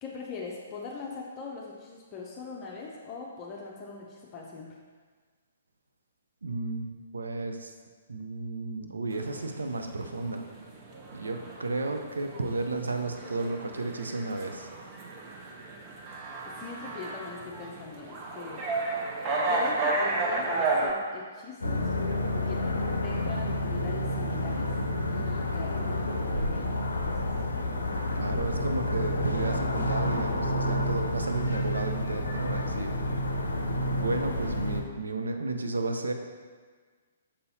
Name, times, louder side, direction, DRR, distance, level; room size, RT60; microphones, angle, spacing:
voice 1, 0.0-4.7 16.4-18.7 19.5-21.9 22.5-22.7 23.0-24.7 25.2-27.2, left 4 dB, 25° left, -3 dB, 0.7 m, -41 dB
voice 2, 6.4-7.7 8.1-10.4 11.1-14.7 28.1-32.9 33.9-36.1, right 3 dB, 70° right, 5 dB, 0.6 m, -33 dB
sound 1, 9.1-20.9, right 2 dB, 30° right, 0.8 m, -32 dB
sound 2, 21.6-34.8, left 1 dB, 75° left, 0.6 m, -29 dB
6.8 x 5.4 x 2.8 m, 1.5 s
figure-of-eight pair, 120°, 0 cm